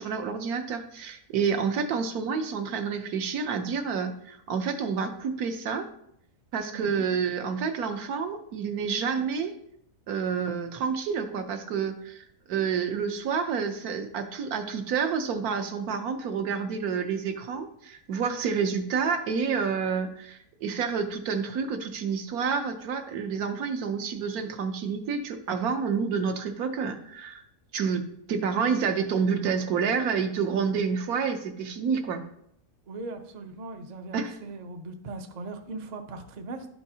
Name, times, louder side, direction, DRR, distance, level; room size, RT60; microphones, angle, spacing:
voice 1, 0.0-5.9 6.5-9.5 10.1-27.4 27.7-28.0 28.3-32.2 34.1-34.4, right 6 dB, 80° right, 6 dB, 1.2 m, -29 dB
voice 2, 32.9-36.7, right 3 dB, 55° right, 5 dB, 0.4 m, -39 dB
11.5 x 4.5 x 2.8 m, 0.75 s
omnidirectional pair, 1.6 m